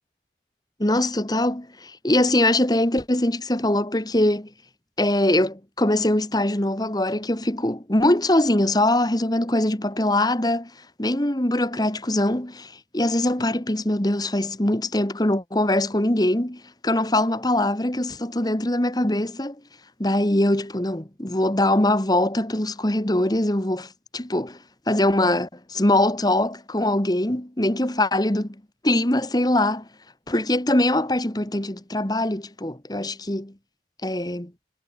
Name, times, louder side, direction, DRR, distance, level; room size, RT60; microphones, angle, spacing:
voice 1, 0.8-4.5 5.0-10.7 11.0-19.6 20.0-24.6 24.9-28.5 28.8-29.8 30.3-33.5 34.0-34.5, left 1 dB, 20° left, 1.6 m, -22 dB
head